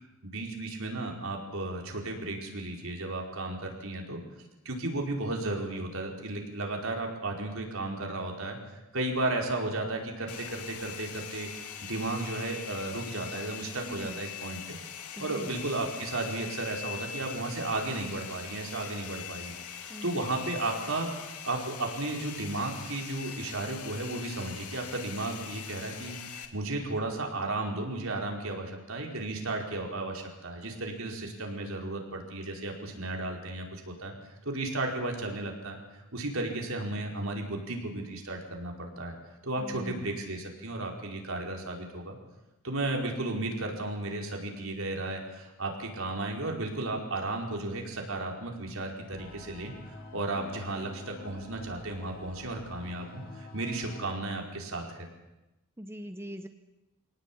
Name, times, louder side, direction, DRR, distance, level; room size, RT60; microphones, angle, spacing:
voice 1, 0.2-4.2 4.6-8.6 8.9-11.5 11.8-14.8 15.2-21.1 21.4-34.1 34.4-39.1 39.4-42.2 42.6-49.7 50.1-55.1, right 2 dB, 65° right, 1 dB, 4.9 m, -34 dB
Domestic sounds home sounds, 10.3-26.5, left 8 dB, 85° left, 2.5 m, -42 dB
voice 2, 13.9-14.2 15.2-15.5 19.9-20.2 39.6-40.1 55.8-56.5, equal, 10° right, 8 dB, 0.9 m, -41 dB
sound 1, 49.1-54.2, left 2 dB, 45° left, 5.1 m, -49 dB
24.5 x 18.5 x 8.7 m, 0.99 s
head